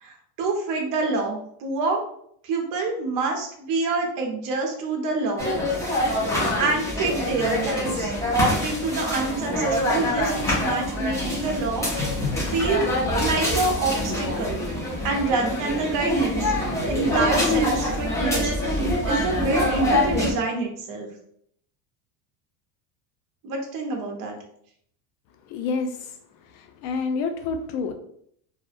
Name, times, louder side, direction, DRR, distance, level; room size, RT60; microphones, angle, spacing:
voice 1, 0.0-2.0 2.4-5.5 5.9-6.0 6.6-11.9 12.5-12.9 13.2-14.6 15.0-16.5 16.9-18.5 19.0-21.1 23.4-24.4, right 3 dB, 45° right, 2 dB, 0.7 m, -27 dB
sound 1, 5.4-20.3, left 1 dB, 5° left, 0.4 m, -25 dB
voice 2, 25.5-26.1 26.5-27.9, left 4 dB, 75° left, 6 dB, 0.6 m, -28 dB
2.4 x 2.0 x 2.5 m, 0.68 s
cardioid pair, 135°, 46 cm